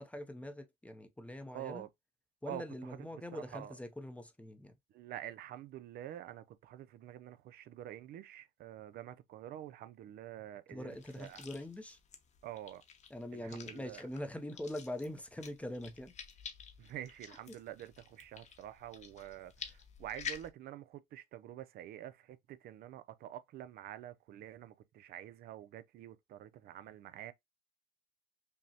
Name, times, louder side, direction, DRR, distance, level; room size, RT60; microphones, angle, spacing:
voice 1, 0.0-1.9 2.4-4.7 10.7-12.0 13.1-16.1 17.5-17.6, left 1 dB, 10° left, 0.5 m, -43 dB
voice 2, 1.5-1.9 2.5-3.0 3.3-3.7 4.9-11.5 12.4-12.8 13.3-14.0 16.8-27.3, right 12 dB, 65° right, 0.4 m, -47 dB
sound 1, 10.9-20.5, left 7 dB, 45° left, 0.7 m, -50 dB
5.3 x 2.0 x 2.7 m
cardioid pair, 110°, 17 cm